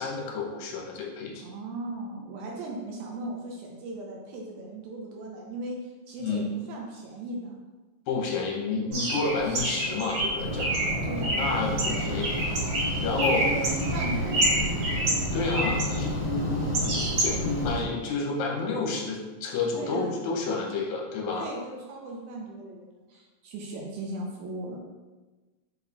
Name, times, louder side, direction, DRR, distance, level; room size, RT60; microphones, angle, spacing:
voice 1, 0.0-1.5 6.2-6.5 8.1-10.9 11.3-12.3 13.0-13.5 15.3-21.5, left 4 dB, 75° left, -1 dB, 2.1 m, -30 dB
voice 2, 1.4-5.8 6.1-7.6 9.5-10.1 11.0-12.1 13.1-14.7 19.7-20.2 21.3-24.8, right 2 dB, 75° right, -2 dB, 2.0 m, -38 dB
Bird, 8.9-17.7, right 1 dB, 60° right, 2.4 m, -29 dB
sound 1, 10.4-17.8, equal, 60° left, 1.8 m, -31 dB
5.4 x 4.2 x 2.3 m, 1.2 s
omnidirectional pair, 3.5 m